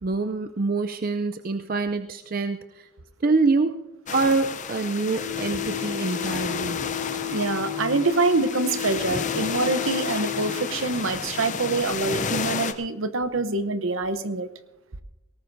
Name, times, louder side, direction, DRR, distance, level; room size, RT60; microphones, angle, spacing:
voice 1, 0.0-2.6 3.2-3.8 4.1-6.8, right 3 dB, 40° right, 8 dB, 0.4 m, -25 dB
sound 1, 4.1-12.7, left 5 dB, 35° left, 0.6 m, -31 dB
sound 2, 5.1-11.1, left 12 dB, 20° right, 1.9 m, -33 dB
voice 2, 7.3-14.5, right 3 dB, 70° right, 11 dB, 0.8 m, -25 dB
19.0 x 18.5 x 2.7 m, 0.96 s
head